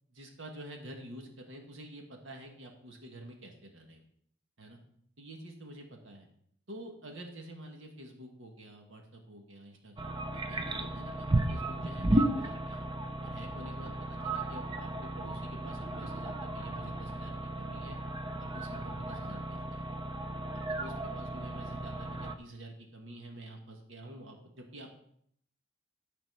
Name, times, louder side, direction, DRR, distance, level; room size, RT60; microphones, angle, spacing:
voice 1, 0.1-4.0 4.6-4.8 5.2-6.3 6.7-12.8 13.2-18.0 18.4-19.8 20.5-24.9, right 1 dB, 80° right, 2 dB, 1.6 m, -48 dB
sound 1, 10.0-22.3, right 1 dB, 25° right, 0.7 m, -34 dB
12.5 x 4.3 x 5.6 m, 0.67 s
head